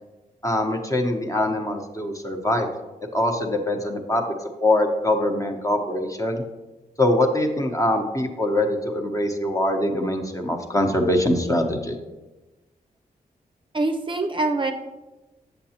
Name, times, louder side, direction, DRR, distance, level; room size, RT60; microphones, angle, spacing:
voice 1, 0.4-2.7 3.1-4.3 4.6-6.4 7.0-12.0, left 1 dB, 20° left, 4 dB, 1.0 m, -23 dB
voice 2, 13.7-14.7, right 2 dB, 30° right, 4 dB, 0.6 m, -24 dB
7.2 x 6.6 x 2.9 m, 1.1 s
cardioid pair, 55°, 16 cm